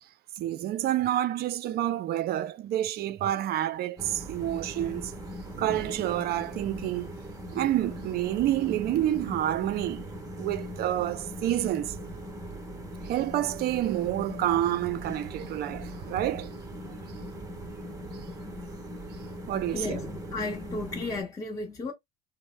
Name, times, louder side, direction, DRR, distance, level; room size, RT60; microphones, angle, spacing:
voice 1, 0.4-5.1 5.6-7.1 7.5-10.1 10.4-12.0 13.0-16.5 19.5-20.0, right 13 dB, 50° right, 0.5 m, -28 dB
sound 1, 4.0-21.2, equal, 15° right, 0.8 m, -40 dB
voice 2, 20.3-21.9, left 2 dB, 15° left, 0.9 m, -33 dB
2.7 x 2.0 x 3.1 m
supercardioid pair, 110°, 21 cm